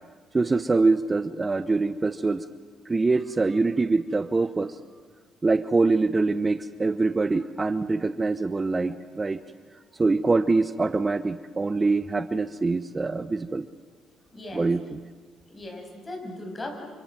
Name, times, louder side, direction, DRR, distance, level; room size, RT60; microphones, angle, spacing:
voice 1, 0.3-2.5 2.9-4.8 5.4-9.4 10.0-13.7 14.5-15.0, right 3 dB, 25° right, 12 dB, 0.9 m, -24 dB
voice 2, 14.3-14.7 15.5-16.8, left 1 dB, 30° left, 4 dB, 7.4 m, -38 dB
29.0 x 26.5 x 7.7 m, 1.4 s
supercardioid pair, 70°, 0 cm